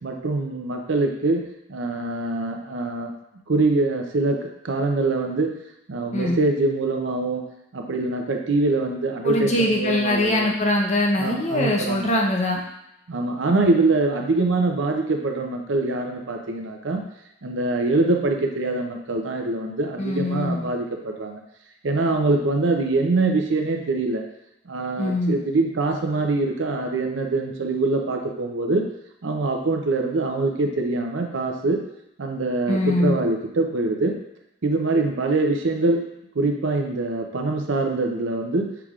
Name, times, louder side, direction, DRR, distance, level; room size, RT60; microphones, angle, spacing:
voice 1, 0.0-1.4 1.7-3.1 3.5-5.5 5.9-7.4 7.7-10.5 11.2-12.2 13.1-17.0 17.4-21.4 21.8-24.2 24.7-28.8 29.2-31.8 32.2-34.1 34.6-36.0 36.3-38.7, right 2 dB, 70° right, 3 dB, 0.6 m, -24 dB
voice 2, 9.2-12.6 20.0-20.7 25.0-25.4 32.7-33.2, left 1 dB, 35° left, 0 dB, 0.6 m, -22 dB
5.8 x 3.4 x 2.4 m, 0.84 s
head